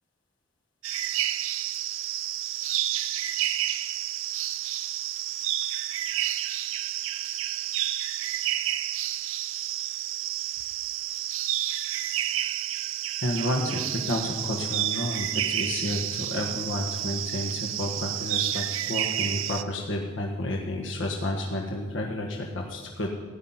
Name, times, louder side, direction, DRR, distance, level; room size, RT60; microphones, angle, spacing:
sound 1, 0.8-19.6, right 12 dB, 80° right, 0.5 m, -30 dB
voice 1, 13.2-23.1, left 1 dB, 70° left, 0 dB, 1.5 m, -31 dB
15.5 x 5.8 x 9.5 m, 1.5 s
head